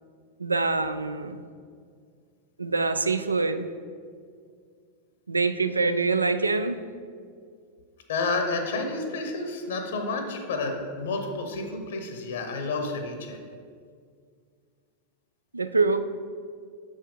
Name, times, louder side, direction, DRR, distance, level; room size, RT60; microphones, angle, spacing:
voice 1, 0.4-1.4 2.6-3.7 5.3-6.8 15.5-16.0, right 3 dB, 80° right, 10 dB, 0.3 m, -25 dB
voice 2, 8.1-13.4, left 3 dB, 60° left, 4 dB, 0.8 m, -30 dB
6.8 x 5.4 x 3.7 m, 2.1 s
figure-of-eight pair, 90°, 0 cm